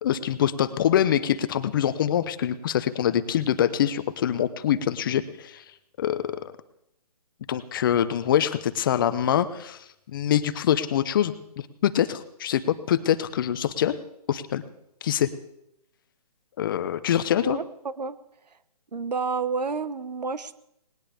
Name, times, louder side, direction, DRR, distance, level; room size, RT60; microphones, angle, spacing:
voice 1, 0.0-5.6 6.0-6.2 7.5-9.8 10.1-11.3 11.8-13.9 14.3-14.6 15.0-15.3 16.6-17.6, left 10 dB, 35° left, 13 dB, 0.8 m, -24 dB
voice 2, 17.4-18.2 18.9-20.5, right 5 dB, 85° right, 15 dB, 1.1 m, -30 dB
19.5 x 18.5 x 3.5 m, 0.79 s
hypercardioid pair, 155°, 21 cm